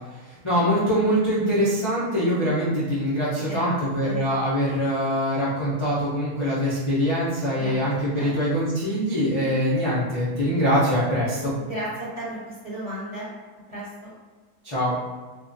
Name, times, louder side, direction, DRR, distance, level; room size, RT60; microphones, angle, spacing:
voice 1, 0.1-11.5 14.6-15.0, equal, 30° left, -10 dB, 0.6 m, -23 dB
voice 2, 3.4-4.2 7.6-7.7 8.1-8.3 11.6-13.3 13.7-14.1, right 1 dB, 25° right, -10 dB, 1.4 m, -34 dB
2.9 x 2.4 x 3.9 m, 1.3 s
omnidirectional pair, 1.5 m